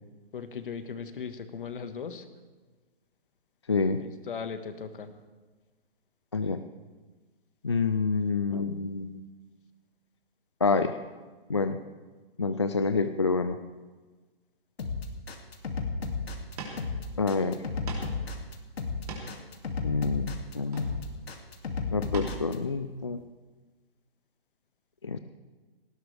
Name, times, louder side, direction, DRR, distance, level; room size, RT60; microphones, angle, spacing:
voice 1, 0.3-2.3 4.0-5.1, left 6 dB, 55° left, 9 dB, 1.6 m, -38 dB
voice 2, 3.7-4.0 6.3-6.6 7.6-9.2 10.6-11.0 11.5-11.8 12.4-13.6 17.2-17.6 19.8-21.0 21.9-23.2 25.0-25.2, left 4 dB, 30° left, 9 dB, 0.4 m, -27 dB
sound 1, 14.8-22.5, left 4 dB, 80° left, 2.5 m, -33 dB
sound 2, 16.6-16.8 17.2-17.3 17.9-18.2 18.8-19.5 20.6-21.2 22.1-22.4 22.8-23.0, right 3 dB, 40° right, 3.2 m, -40 dB
18.0 x 17.0 x 3.4 m, 1.3 s
hypercardioid pair, 165°, 31 cm